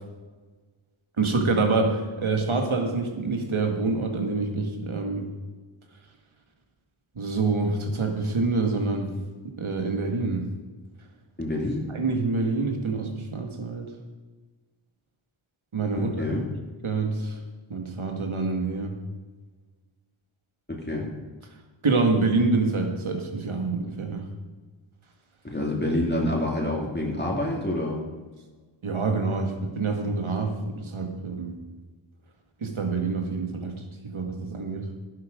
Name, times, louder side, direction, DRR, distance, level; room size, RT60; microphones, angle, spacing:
voice 1, 1.2-5.3 7.2-9.1 9.4-10.5 11.9-13.9 15.7-16.4 16.8-17.4 17.7-19.0 21.8-24.3 28.8-31.6 32.6-33.8 34.1-34.9, right 3 dB, 70° right, 4 dB, 2.0 m, -26 dB
voice 2, 11.4-11.9 16.0-16.5 20.7-21.1 25.4-28.0, left 1 dB, 20° left, -2 dB, 2.1 m, -27 dB
12.5 x 10.5 x 5.2 m, 1.4 s
wide cardioid pair, 50°, 49 cm